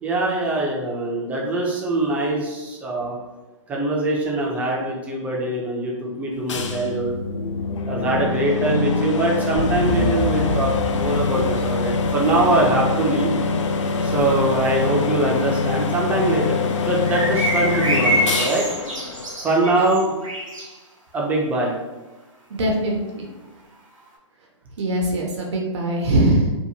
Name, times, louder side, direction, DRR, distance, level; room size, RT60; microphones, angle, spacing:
voice 1, 0.0-3.2 3.7-7.1 7.9-13.3 14.0-18.6 19.4-20.2 21.1-21.7, right 2 dB, 10° right, -2 dB, 0.4 m, -23 dB
sound 1, 6.5-20.0, left 4 dB, 70° left, 0.4 m, -24 dB
sound 2, 9.6-14.9, right 1 dB, 35° left, 0.7 m, -31 dB
voice 2, 9.8-10.2 22.5-23.3 24.8-26.5, right 1 dB, 60° right, 0 dB, 0.6 m, -22 dB
sound 3, 17.0-20.7, right 1 dB, 85° right, 0.9 m, -25 dB
2.7 x 2.2 x 2.7 m, 1.1 s
hypercardioid pair, 140°, 16 cm